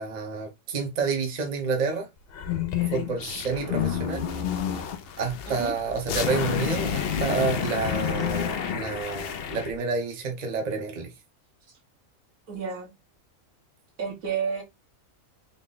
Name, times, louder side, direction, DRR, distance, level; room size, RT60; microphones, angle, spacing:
voice 1, 0.0-2.1 2.9-4.3 5.2-11.1, right 4 dB, 40° right, 0.7 m, -29 dB
sound 1, 2.3-9.7, left 8 dB, 60° left, 0.6 m, -29 dB
voice 2, 12.5-12.9 14.0-14.6, right 6 dB, 80° right, 1.5 m, -30 dB
3.8 x 2.1 x 3.8 m
omnidirectional pair, 1.4 m